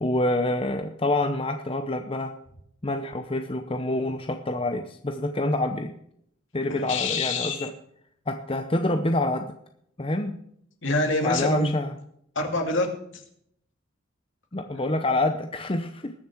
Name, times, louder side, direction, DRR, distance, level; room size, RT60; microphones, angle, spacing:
voice 1, 0.0-2.3 2.8-5.9 6.5-7.7 8.3-9.5 10.0-10.4 11.2-11.9 14.5-16.1, left 2 dB, 25° left, 6 dB, 0.7 m, -27 dB
voice 2, 6.7-7.7 10.8-11.7 12.3-12.9 13.1-13.2, left 2 dB, 70° left, 3 dB, 2.3 m, -26 dB
20.5 x 7.1 x 4.6 m, 0.69 s
head